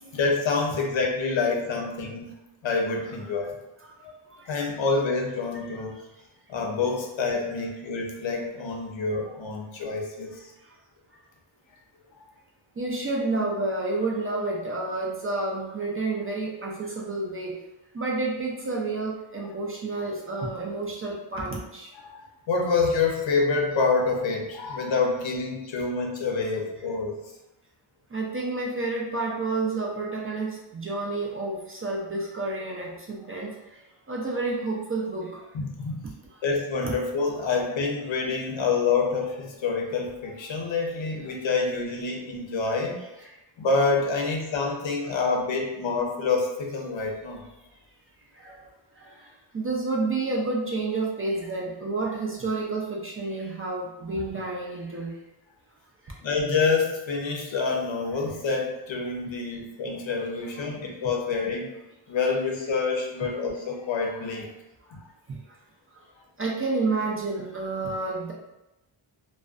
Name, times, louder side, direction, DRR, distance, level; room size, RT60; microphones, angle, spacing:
voice 1, 0.0-2.3 2.6-3.6 4.0-4.1 4.5-5.9 6.5-10.3 22.0-27.1 35.5-36.0 36.4-42.9 43.6-47.4 48.5-48.6 56.2-61.7 62.1-64.5 64.9-65.1, left 4 dB, 65° left, 0 dB, 0.6 m, -27 dB
voice 2, 12.8-17.5 17.9-21.9 25.0-25.1 28.1-33.5 34.1-35.3 36.8-36.9 43.2-43.3 48.4-48.5 49.5-55.1 66.4-68.3, right 3 dB, 30° right, -3 dB, 0.4 m, -29 dB
2.5 x 2.1 x 2.4 m, 0.95 s
wide cardioid pair, 95°, 49 cm